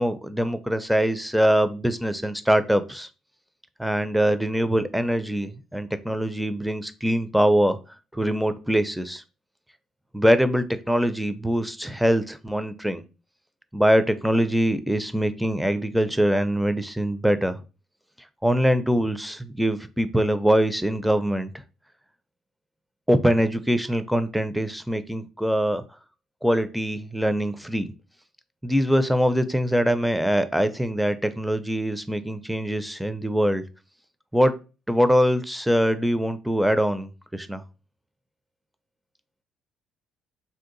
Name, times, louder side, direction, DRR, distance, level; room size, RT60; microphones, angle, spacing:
voice 1, 0.0-3.1 3.8-7.8 8.1-9.2 10.1-13.0 13.7-17.6 18.4-21.5 23.1-25.8 26.4-27.9 28.6-33.6 34.3-34.6 34.9-37.6, equal, 5° right, 11 dB, 0.4 m, -23 dB
2.7 x 2.4 x 3.8 m, 0.32 s
supercardioid pair, 70°, 0 cm